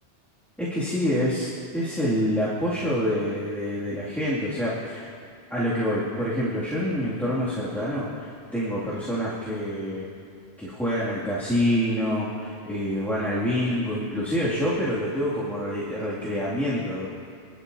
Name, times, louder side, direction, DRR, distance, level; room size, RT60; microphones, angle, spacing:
voice 1, 0.6-5.1 5.5-10.1 10.6-17.1, equal, ahead, -10 dB, 2.5 m, -27 dB
28.5 x 12.0 x 2.8 m, 2.2 s
omnidirectional pair, 1.2 m